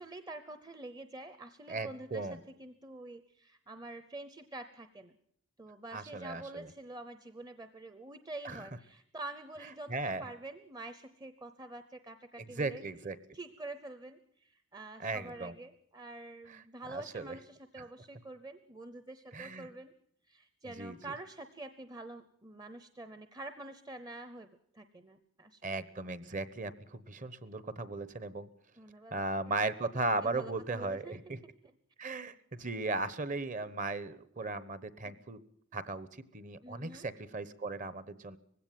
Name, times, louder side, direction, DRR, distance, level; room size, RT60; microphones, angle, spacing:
voice 1, 0.0-2.3 2.6-5.2 5.6-12.8 13.3-19.9 20.3-24.5 24.7-25.6 28.8-29.2 30.2-31.4 31.6-31.7 35.0-35.1 36.6-37.1, right 2 dB, 20° right, 10 dB, 0.7 m, -47 dB
voice 2, 1.7-2.4 5.9-6.7 8.4-8.7 9.9-10.3 12.4-13.2 15.0-15.5 16.5-16.6 16.9-17.4 17.8-17.9 19.3-19.7 20.7-21.1 25.6-28.5 29.1-31.4 32.0-35.4 35.7-36.1 36.3-38.4, right 3 dB, 35° right, 16 dB, 1.0 m, -37 dB
19.5 x 16.5 x 9.1 m, 0.67 s
head